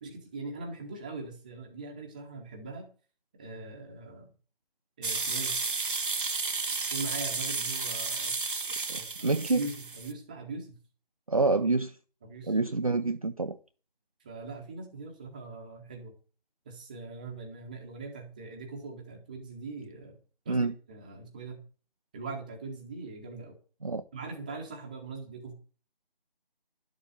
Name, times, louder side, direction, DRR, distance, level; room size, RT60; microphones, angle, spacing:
voice 1, 0.0-2.9 3.4-4.3 5.0-5.6 6.9-8.4 8.9-10.8 12.2-12.6 14.2-16.1 16.6-20.2 20.4-21.6 22.1-23.5 24.1-25.5, right 3 dB, 10° right, 1.0 m, -41 dB
sound 1, 5.0-10.1, right 4 dB, 60° right, 0.9 m, -32 dB
voice 2, 8.9-9.6 11.3-12.0 12.5-13.6 20.5-20.7 23.8-24.0, right 3 dB, 40° right, 0.5 m, -27 dB
11.5 x 7.3 x 7.6 m
figure-of-eight pair, 160°, 29 cm